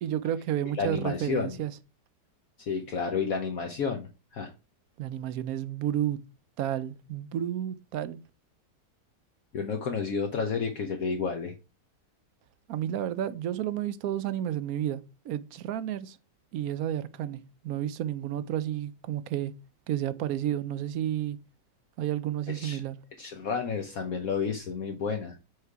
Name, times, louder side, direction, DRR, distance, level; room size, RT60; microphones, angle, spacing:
voice 1, 0.0-1.7 5.0-6.2 6.6-8.2 12.7-16.2 16.5-19.5 19.9-21.4 22.0-23.0, right 11 dB, 70° right, 1.0 m, -31 dB
voice 2, 0.8-1.6 2.6-4.5 9.5-11.5 22.5-22.8 23.2-25.3, left 5 dB, 60° left, 1.2 m, -31 dB
6.5 x 4.9 x 4.7 m
omnidirectional pair, 1.8 m